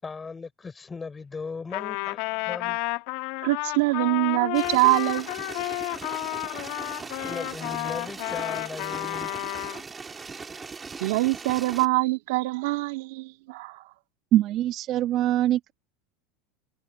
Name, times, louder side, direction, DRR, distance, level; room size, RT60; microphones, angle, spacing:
voice 1, 0.0-2.8 6.8-6.9 7.2-9.3, left 4 dB, 15° left, 6.0 m, -38 dB
Trumpet, 1.7-9.8, left 23 dB, 65° left, 2.0 m, -31 dB
voice 2, 3.4-5.3 11.0-13.8, right 23 dB, 75° right, 2.4 m, -24 dB
sound 1, 4.5-11.9, right 4 dB, 20° right, 3.1 m, -39 dB
voice 3, 14.3-15.7, right 13 dB, 45° right, 1.4 m, -23 dB
supercardioid pair, 120°, 0 cm